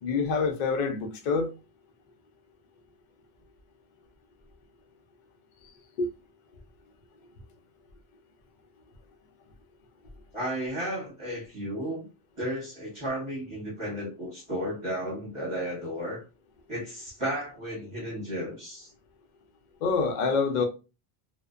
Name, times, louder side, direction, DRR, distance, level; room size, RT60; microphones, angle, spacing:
voice 1, 0.0-1.5 6.0-6.1 19.8-20.7, left 4 dB, 55° left, 0.6 m, -26 dB
voice 2, 10.3-12.1 12.4-16.2 16.7-18.9, equal, 30° right, 0.9 m, -33 dB
2.6 x 2.1 x 2.3 m
omnidirectional pair, 1.0 m